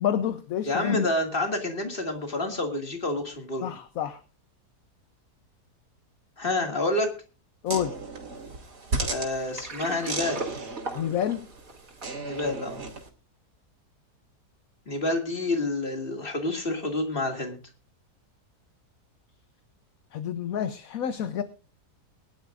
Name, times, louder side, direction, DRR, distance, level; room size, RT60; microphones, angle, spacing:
voice 1, 0.0-1.1 3.6-4.2 7.6-7.9 10.9-11.4 20.1-21.4, left 9 dB, 65° left, 11 dB, 1.2 m, -28 dB
voice 2, 0.6-3.6 6.4-7.1 9.1-10.4 12.2-12.8 14.9-17.6, left 2 dB, 35° left, 4 dB, 2.5 m, -28 dB
sound 1, 7.7-13.1, right 3 dB, 80° right, 3.3 m, -35 dB
Water, 9.4-12.6, right 3 dB, 55° right, 2.7 m, -38 dB
22.5 x 11.5 x 2.5 m, 0.33 s
omnidirectional pair, 1.7 m